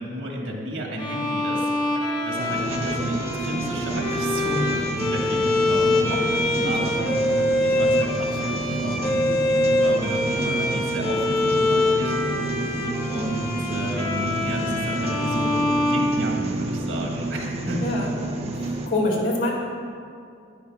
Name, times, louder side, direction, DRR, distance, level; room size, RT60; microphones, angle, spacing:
voice 1, 0.0-12.3 12.6-12.8 13.1-17.8, right 1 dB, 75° right, -1 dB, 1.4 m, -32 dB
Bowed string instrument, 1.0-16.8, left 1 dB, 25° left, 0.8 m, -25 dB
sound 1, 2.3-18.9, right 2 dB, 35° right, 0.6 m, -30 dB
voice 2, 6.1-6.9 17.8-18.1 18.5-19.5, left 1 dB, 90° left, -4 dB, 2.1 m, -26 dB
10.0 x 10.0 x 2.3 m, 2.4 s
head